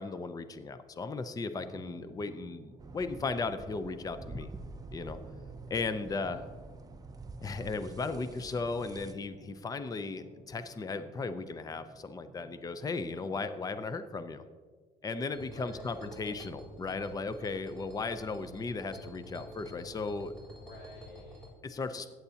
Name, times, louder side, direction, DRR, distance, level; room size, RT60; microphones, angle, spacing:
voice 1, 0.0-4.5 4.9-5.2 5.7-6.4 7.4-14.4 15.0-20.3 21.6-22.1, left 4 dB, 20° left, 11 dB, 0.6 m, -36 dB
sound 1, 1.6-13.1, right 4 dB, 35° right, 1.0 m, -55 dB
sound 2, 2.8-9.1, right 3 dB, 20° right, 0.6 m, -48 dB
voice 2, 6.0-6.5 13.0-13.5 15.4-16.1 20.5-21.7, left 1 dB, 70° left, -1 dB, 2.9 m, -52 dB
sound 3, 15.3-21.5, equal, 5° left, 3.5 m, -48 dB
15.0 x 9.3 x 2.9 m, 1.5 s
cardioid pair, 110°, 17 cm